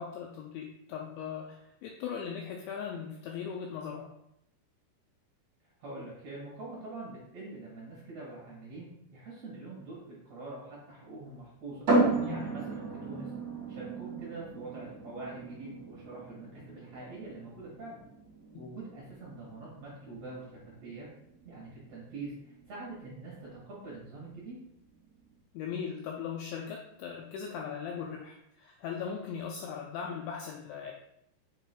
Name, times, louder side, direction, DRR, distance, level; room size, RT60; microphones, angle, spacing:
voice 1, 0.0-4.1 12.2-12.4 18.5-18.6 25.5-30.9, left 7 dB, 85° left, 0 dB, 2.6 m, -39 dB
voice 2, 5.8-11.9 12.2-13.3 13.7-18.0 18.6-20.4 20.8-21.1 21.4-24.6, right 3 dB, 55° right, -5 dB, 2.0 m, -44 dB
sound 1, 11.9-25.4, right 2 dB, 30° right, 2.1 m, -35 dB
6.8 x 6.4 x 2.3 m, 0.78 s
omnidirectional pair, 5.8 m